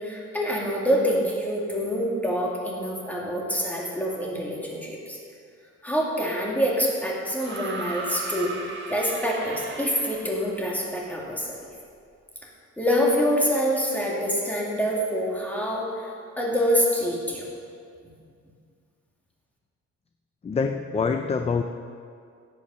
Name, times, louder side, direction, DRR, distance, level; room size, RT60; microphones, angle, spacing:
voice 1, 0.0-5.2 5.8-8.5 8.9-11.6 12.8-17.5, equal, 5° left, -4 dB, 2.2 m, -26 dB
sound 1, 7.4-10.5 11.7-11.8, right 3 dB, 40° right, 1.6 m, -36 dB
voice 2, 20.4-21.6, left 5 dB, 20° left, 6 dB, 0.4 m, -25 dB
16.5 x 8.5 x 5.6 m, 2.3 s
wide cardioid pair, 175°, 29 cm